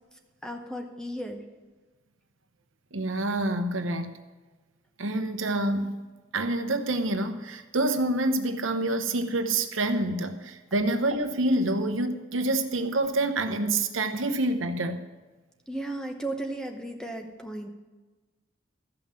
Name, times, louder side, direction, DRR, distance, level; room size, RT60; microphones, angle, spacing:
voice 1, 0.4-1.4 15.7-17.7, right 1 dB, 5° left, 4 dB, 0.8 m, -35 dB
voice 2, 2.9-4.2 5.0-6.0 6.3-15.0, right 2 dB, 80° right, 7 dB, 1.0 m, -27 dB
13.5 x 5.7 x 7.4 m, 1.3 s
head